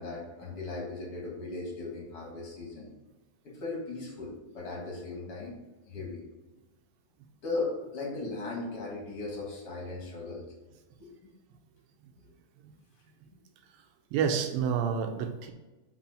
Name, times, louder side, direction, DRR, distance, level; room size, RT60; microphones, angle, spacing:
voice 1, 0.0-2.9 3.4-5.6 5.9-6.2 7.4-10.4 11.0-11.3, left 3 dB, 45° left, -2 dB, 2.3 m, -37 dB
voice 2, 14.1-15.5, right 7 dB, 85° right, 5 dB, 2.6 m, -29 dB
5.8 x 5.5 x 4.3 m, 1.2 s
omnidirectional pair, 4.1 m